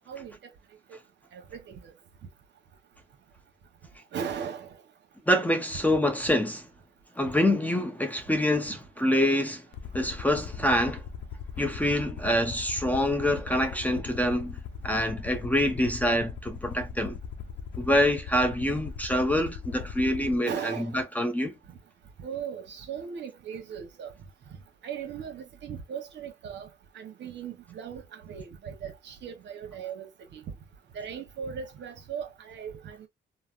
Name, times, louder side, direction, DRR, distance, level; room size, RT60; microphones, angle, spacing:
voice 1, 0.1-0.5 0.9-1.0 1.3-1.9 4.1-4.7 10.6-10.7 13.3-13.4 20.4-21.0 22.2-24.1 24.8-26.7 26.9-30.4 30.9-33.1, right 7 dB, 65° right, 0.9 m, -38 dB
voice 2, 5.3-6.7 7.2-9.7 9.9-11.0 11.6-14.6 14.8-17.2 17.8-21.6, left 1 dB, 10° left, 0.6 m, -26 dB
Aircraft, 9.7-20.4, left 6 dB, 65° left, 0.5 m, -39 dB
3.2 x 2.0 x 2.4 m
cardioid pair, 90°, 20 cm